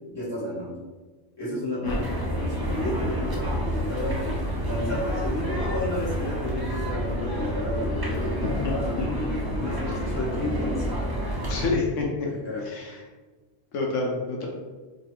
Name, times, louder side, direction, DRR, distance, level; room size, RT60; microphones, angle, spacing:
voice 1, 0.1-0.7 1.4-10.8 12.2-12.7, left 1 dB, 20° left, -9 dB, 1.5 m, -32 dB
voice 2, 1.8-2.1 8.4-8.5 9.0-9.2 11.4-12.0 12.7-12.9 13.7-14.5, left 3 dB, 80° left, -1 dB, 1.0 m, -28 dB
sound 1, 1.8-11.7, equal, 30° right, 0.4 m, -29 dB
3.1 x 2.7 x 4.2 m, 1.3 s
omnidirectional pair, 1.3 m